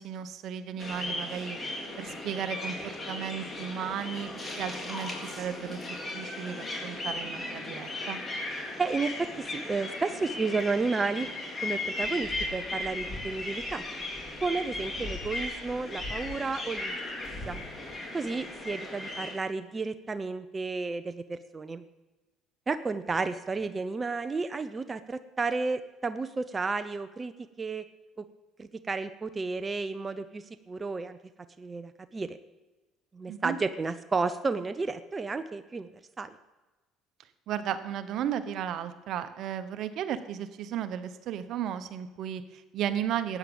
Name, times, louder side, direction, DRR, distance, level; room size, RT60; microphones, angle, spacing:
voice 1, 0.0-1.6 2.0-4.3 4.6-8.2 33.3-33.6 37.5-43.4, right 9 dB, 65° right, 11 dB, 1.0 m, -34 dB
sound 1, 0.8-19.3, left 2 dB, 25° left, 3.6 m, -36 dB
voice 2, 8.8-11.3 11.6-13.8 14.4-17.0 17.5-17.6 18.1-21.8 22.7-27.8 28.6-31.2 31.6-32.4 33.1-35.9 36.2-36.4, right 4 dB, 25° right, 10 dB, 0.7 m, -32 dB
13.5 x 9.2 x 7.1 m, 1.1 s
supercardioid pair, 90°, 0 cm